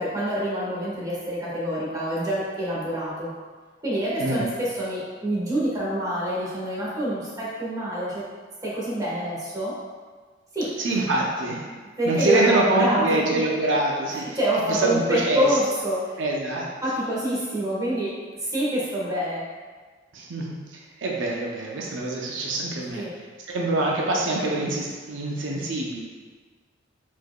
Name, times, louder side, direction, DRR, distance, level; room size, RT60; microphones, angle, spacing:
voice 1, 0.0-3.3 3.8-8.2 8.6-9.8 10.5-10.8 11.6-13.4 14.1-16.2 16.8-19.5 22.9-23.2, equal, 20° right, -7 dB, 1.3 m, -27 dB
voice 2, 10.8-11.7 12.1-14.4 14.7-15.6 16.2-16.7 20.1-23.0 23.5-26.0, right 2 dB, 85° right, -2 dB, 0.6 m, -25 dB
4.6 x 4.4 x 2.3 m, 1.5 s
head